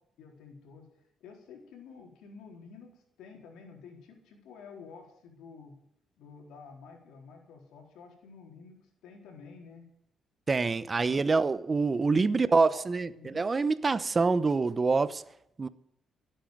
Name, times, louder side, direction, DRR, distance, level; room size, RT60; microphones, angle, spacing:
voice 1, 0.2-0.9 1.2-2.9 3.2-5.8 6.2-9.8 11.0-11.2 12.3-12.8 13.1-13.4, left 5 dB, 85° left, 4.1 m, -50 dB
voice 2, 10.5-15.2 15.6-15.7, right 4 dB, 30° right, 0.9 m, -26 dB
17.0 x 9.0 x 7.9 m
cardioid pair, 90°, 0 cm